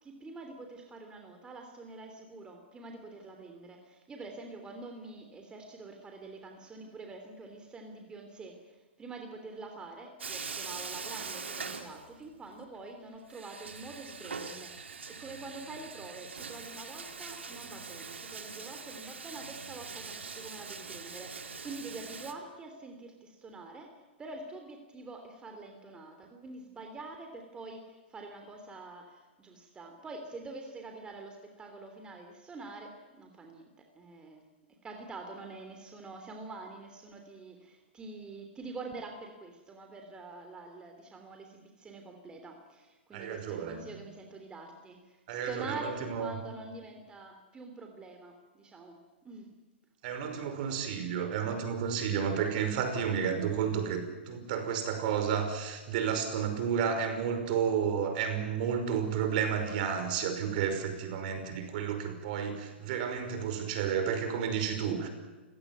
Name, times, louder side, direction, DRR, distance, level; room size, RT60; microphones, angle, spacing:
voice 1, 0.0-34.5 34.8-49.5, right 3 dB, 15° right, 4 dB, 3.3 m, -46 dB
Bathtub (filling or washing), 10.2-12.5 12.7-12.8 13.3-22.3, right 5 dB, 90° right, 2.6 m, -42 dB
voice 2, 43.1-43.8 45.3-46.3 50.0-65.1, right 7 dB, 50° right, 8 dB, 5.4 m, -31 dB
29.5 x 17.0 x 9.6 m, 1.2 s
hypercardioid pair, 125°, 6 cm